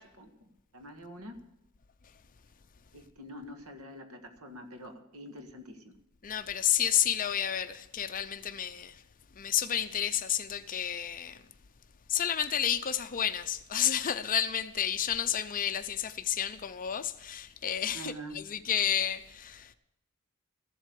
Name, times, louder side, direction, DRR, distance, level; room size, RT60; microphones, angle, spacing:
voice 1, 0.2-1.4 2.9-6.0 17.9-18.4, equal, 75° right, 1.7 m, -46 dB
voice 2, 6.2-9.0 9.4-11.4 12.1-19.7, left 10 dB, 40° left, 0.6 m, -31 dB
14.5 x 7.9 x 8.3 m
head